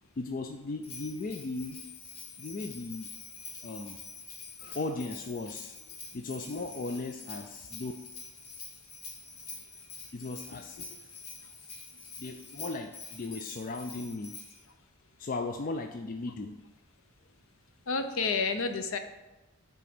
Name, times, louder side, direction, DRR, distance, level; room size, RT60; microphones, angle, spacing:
voice 1, 0.2-1.8 2.4-3.1 3.6-4.0 4.6-7.9 10.1-11.1 12.2-14.4 15.2-16.6, left 3 dB, 40° left, 5 dB, 0.3 m, -37 dB
Bell, 0.8-14.6, left 4 dB, 90° left, 1.6 m, -46 dB
voice 2, 17.9-19.0, left 4 dB, 65° left, 8 dB, 0.7 m, -29 dB
9.0 x 3.6 x 6.0 m, 1.0 s
head